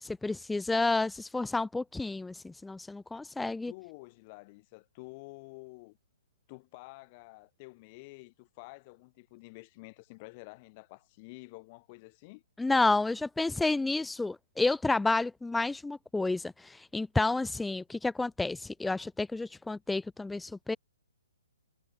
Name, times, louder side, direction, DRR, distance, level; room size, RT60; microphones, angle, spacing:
voice 1, 0.0-3.7 12.6-20.8, left 3 dB, 5° left, 0.6 m, -30 dB
voice 2, 3.7-6.0 6.5-12.4, left 26 dB, 30° left, 7.6 m, -49 dB
hypercardioid pair, 150°, 0 cm